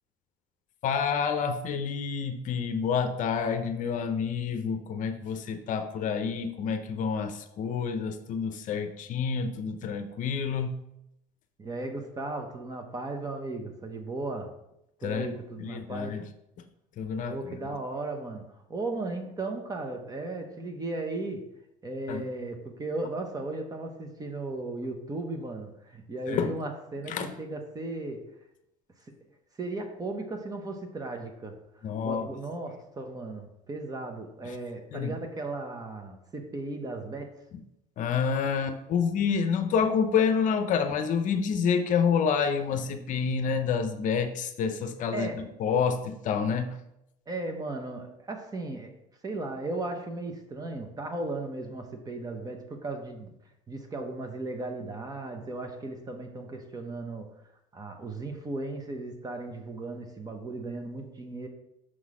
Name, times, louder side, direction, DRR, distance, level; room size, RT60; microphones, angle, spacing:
voice 1, 0.8-10.8 15.0-15.3 15.6-16.2 17.0-17.3 22.1-22.2 26.3-26.5 27.1-27.3 31.8-32.3 34.4-34.5 34.9-35.1 38.0-45.3 45.6-46.8, left 6 dB, 55° left, 8 dB, 0.7 m, -28 dB
voice 2, 11.6-14.5 15.0-16.2 17.2-21.5 21.8-28.3 29.6-31.6 31.8-37.3 45.1-45.4 47.3-48.9 49.2-53.3 53.7-57.3 57.7-61.5, right 2 dB, 25° right, 5 dB, 1.0 m, -36 dB
6.4 x 3.9 x 4.9 m, 0.83 s
cardioid pair, 110°, 16 cm